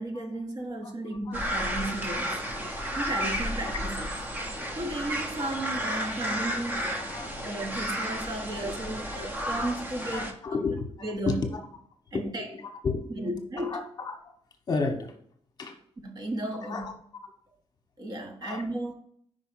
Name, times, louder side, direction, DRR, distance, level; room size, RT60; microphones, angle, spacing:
voice 1, 0.0-2.4 2.9-4.1 4.7-6.9 7.2-10.7 11.0-11.5 12.1-12.5 13.2-13.9 16.0-16.9 18.0-18.9, right 1 dB, 35° right, 1.1 m, -34 dB
sound 1, 1.3-10.3, equal, 15° right, 0.9 m, -32 dB
voice 2, 5.4-5.8 6.2-6.3 7.1-7.3 8.6-8.7 10.1-10.9 11.3-11.6 12.1-13.1 13.6-14.2 14.7-15.1 15.6-15.8 16.6-16.9 18.4-18.6, left 4 dB, 35° left, 1.1 m, -32 dB
5.3 x 4.8 x 6.1 m
wide cardioid pair, 160°, 11 cm